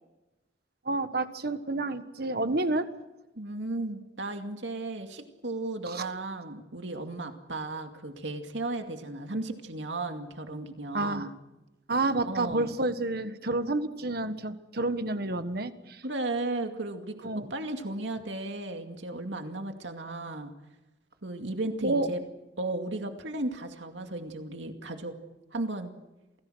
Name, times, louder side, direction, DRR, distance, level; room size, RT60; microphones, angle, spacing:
voice 1, 0.8-2.9 5.9-6.1 10.9-11.3 11.9-16.0 17.2-17.5 21.8-22.1, right 2 dB, 55° right, 10 dB, 1.5 m, -29 dB
voice 2, 3.4-11.3 12.2-12.7 16.0-20.5 21.2-22.2 22.6-25.2 25.5-25.9, right 2 dB, 75° right, 5 dB, 2.3 m, -35 dB
28.0 x 18.5 x 6.4 m, 1.0 s
head